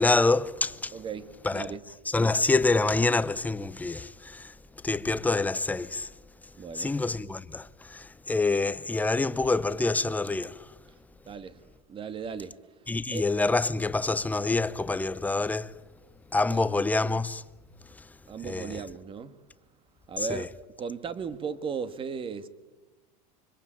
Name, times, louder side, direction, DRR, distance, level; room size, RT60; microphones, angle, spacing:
voice 1, 0.0-0.9 1.4-1.7 2.1-4.5 4.8-6.1 6.7-10.5 12.9-15.7 16.3-17.4 18.4-18.8 20.2-20.5, left 3 dB, 10° left, 0.8 m, -26 dB
voice 2, 0.9-1.9 6.6-6.9 11.3-11.6 11.9-12.6 13.1-13.2 16.5-16.7 18.3-19.3 20.1-20.5 20.8-22.5, right 6 dB, 25° right, 1.9 m, -36 dB
25.0 x 24.5 x 9.1 m
supercardioid pair, 130°, 20 cm